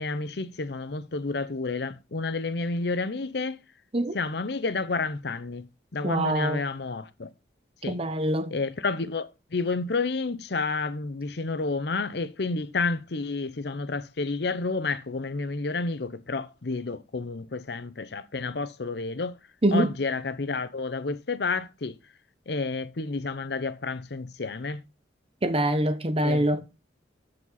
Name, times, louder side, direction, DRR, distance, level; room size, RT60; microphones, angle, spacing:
voice 1, 0.0-3.6 4.1-5.7 5.9-7.3 7.8-8.0 8.5-19.4 19.7-22.0 22.5-24.8 26.2-26.5, left 3 dB, 60° left, 0.7 m, -30 dB
voice 2, 6.0-6.6 7.9-8.5 19.6-19.9 25.4-26.6, right 1 dB, 30° right, 0.9 m, -24 dB
13.0 x 4.9 x 4.0 m
head